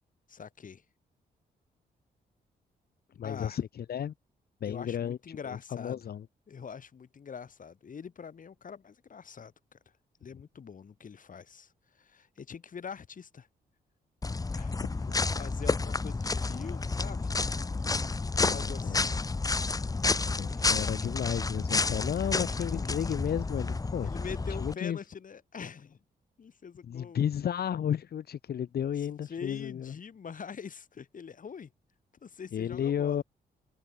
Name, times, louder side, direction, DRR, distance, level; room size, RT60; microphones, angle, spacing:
voice 1, 0.3-0.8 3.2-3.6 4.7-6.0 6.5-9.8 10.2-13.5 14.5-14.8 15.4-17.3 18.4-19.2 21.9-22.5 24.0-26.0 26.4-27.3 29.3-31.7 32.2-33.2, left 6 dB, 50° left, 2.8 m, -44 dB
voice 2, 3.2-4.1 4.6-6.2 18.4-19.1 20.2-24.1 24.6-25.0 26.8-29.9 32.5-33.2, left 9 dB, 70° left, 1.6 m, -33 dB
sound 1, 14.2-24.7, left 3 dB, 20° left, 0.7 m, -30 dB
cardioid pair, 75°, 17 cm